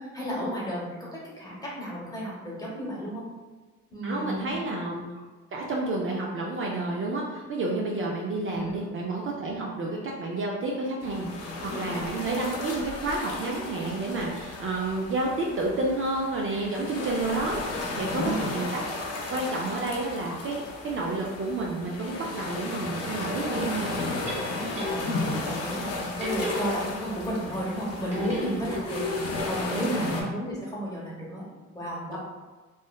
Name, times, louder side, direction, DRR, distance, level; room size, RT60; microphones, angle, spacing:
voice 1, 0.0-3.2 3.9-4.6 8.5-8.9 11.7-12.0 18.2-18.7 24.5-25.1 25.4-29.0 29.4-31.4 31.7-32.2, equal, 10° left, -6 dB, 0.9 m, -33 dB
voice 2, 4.0-5.1 5.5-18.8 19.3-23.9 29.7-30.3 32.1-32.2, right 2 dB, 45° right, -2 dB, 0.4 m, -30 dB
sound 1, 11.0-30.2, left 2 dB, 55° left, 0.6 m, -34 dB
sound 2, 24.2-25.4 26.2-27.3 28.1-29.5, left 1 dB, 25° right, 1.0 m, -34 dB
3.1 x 2.0 x 2.2 m, 1.3 s
cardioid pair, 90°, 30 cm